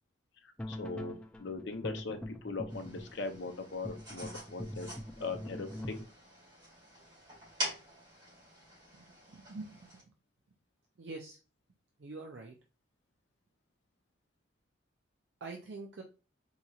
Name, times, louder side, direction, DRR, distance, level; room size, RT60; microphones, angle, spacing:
voice 1, 0.4-4.9 5.2-6.0, left 3 dB, 65° left, 5 dB, 0.6 m, -40 dB
sound 1, 0.6-6.0, left 1 dB, 5° left, 0.3 m, -43 dB
sound 2, 2.7-10.0, equal, 20° right, 2.0 m, -45 dB
voice 2, 8.9-9.7 11.0-11.4 12.0-12.6 15.4-16.0, right 3 dB, 60° right, 2 dB, 0.4 m, -45 dB
4.0 x 2.9 x 2.3 m, 0.33 s
head